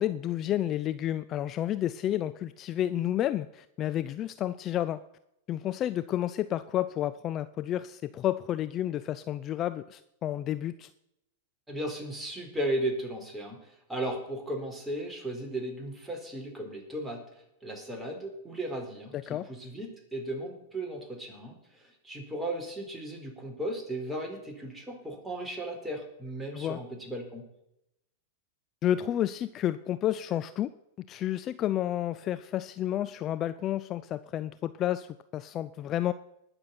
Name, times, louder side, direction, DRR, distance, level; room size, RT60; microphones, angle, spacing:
voice 1, 0.0-5.0 5.5-10.9 19.1-19.5 26.5-26.8 28.8-30.7 31.1-36.1, left 12 dB, 35° left, 13 dB, 0.5 m, -30 dB
voice 2, 11.7-17.2 17.6-27.4, right 1 dB, 5° right, 1 dB, 4.1 m, -36 dB
20.0 x 6.9 x 5.9 m, 0.82 s
hypercardioid pair, 100°, 0 cm